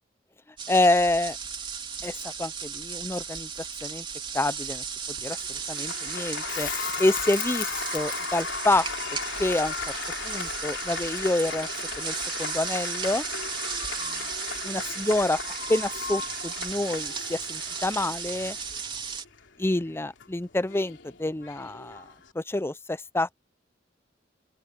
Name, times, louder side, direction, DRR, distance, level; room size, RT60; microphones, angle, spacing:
sound 1, 0.6-19.3, right 6 dB, 30° right, 3.5 m, -35 dB
voice 1, 0.7-1.4 2.0-3.5 3.8-4.0 4.3-4.8 5.2-6.7 7.0-8.9 9.4-9.7 10.2-11.7 12.0-13.2 14.0-14.2 14.6-15.4 15.7-18.6 19.6-22.0 22.3-23.4, left 2 dB, 15° left, 0.6 m, -27 dB
Applause, 5.2-22.3, left 5 dB, 90° left, 3.0 m, -37 dB
Crackle, 6.5-11.6 14.4-14.5, left 11 dB, 50° left, 2.0 m, -39 dB
open air
head